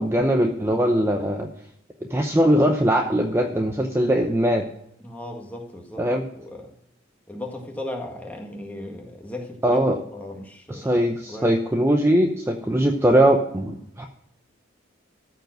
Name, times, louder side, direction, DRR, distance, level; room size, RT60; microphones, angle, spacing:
voice 1, 0.0-1.5 2.1-4.7 6.0-6.2 9.6-10.0 10.7-14.1, right 1 dB, 15° right, 0.7 m, -21 dB
voice 2, 5.0-6.7 7.3-9.8 10.1-11.5, left 1 dB, 10° left, 1.7 m, -37 dB
14.0 x 4.8 x 7.7 m
head